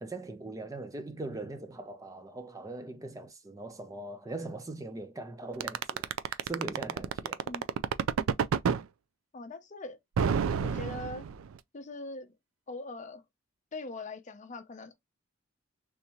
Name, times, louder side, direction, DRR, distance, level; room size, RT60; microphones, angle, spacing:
voice 1, 0.0-7.4, right 2 dB, 15° right, 0.4 m, -41 dB
sound 1, 5.6-8.8 10.2-11.6, right 7 dB, 85° right, 0.4 m, -28 dB
voice 2, 9.3-10.0 10.6-11.2 11.7-12.3 12.7-13.2 13.7-15.0, left 2 dB, 35° left, 0.6 m, -41 dB
3.5 x 2.7 x 2.9 m
head